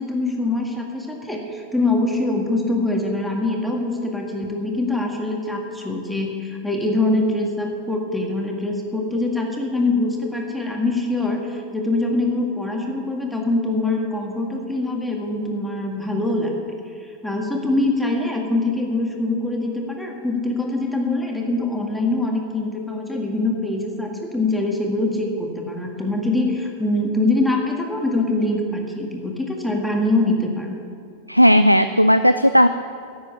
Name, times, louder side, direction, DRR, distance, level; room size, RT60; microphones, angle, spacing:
voice 1, 0.0-16.8 17.2-30.7, left 2 dB, ahead, 0 dB, 1.9 m, -23 dB
voice 2, 31.3-32.7, equal, 90° right, 11 dB, 0.3 m, -14 dB
10.5 x 7.9 x 9.5 m, 2.4 s
figure-of-eight pair, 90°, 0 cm